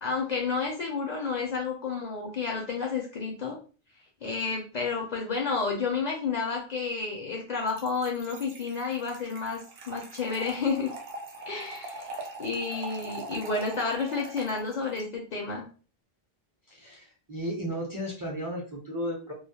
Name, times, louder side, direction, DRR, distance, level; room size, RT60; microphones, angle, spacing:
voice 1, 0.0-3.6 4.2-9.6 9.9-10.9 11.5-15.7, left 4 dB, 55° left, 0 dB, 0.5 m, -31 dB
Trickle dribble / Fill (with liquid), 7.7-15.0, right 2 dB, 70° right, 0.8 m, -42 dB
voice 2, 16.7-19.3, equal, 30° right, -3 dB, 0.4 m, -34 dB
2.3 x 2.0 x 2.7 m, 0.38 s
omnidirectional pair, 1.0 m